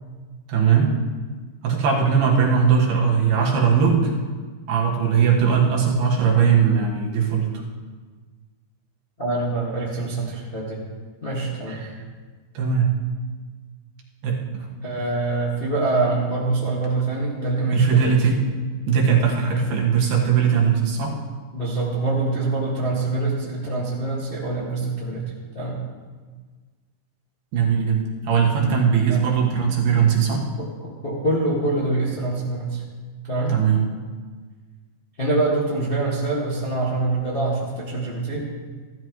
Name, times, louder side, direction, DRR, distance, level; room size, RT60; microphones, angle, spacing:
voice 1, 0.5-0.9 1.6-4.1 4.7-7.5 11.7-11.9 12.5-12.9 14.2-14.7 17.7-18.3 18.9-21.2 27.5-30.4 33.5-33.8, right 6 dB, 75° right, -2 dB, 3.3 m, -19 dB
voice 2, 9.2-10.8 11.2-11.8 14.8-18.2 19.5-19.9 21.5-25.2 25.5-25.8 29.1-29.2 30.6-32.8 33.3-33.5 35.2-38.5, right 2 dB, 30° left, -6 dB, 1.0 m, -25 dB
15.5 x 12.5 x 3.1 m, 1.4 s
omnidirectional pair, 4.6 m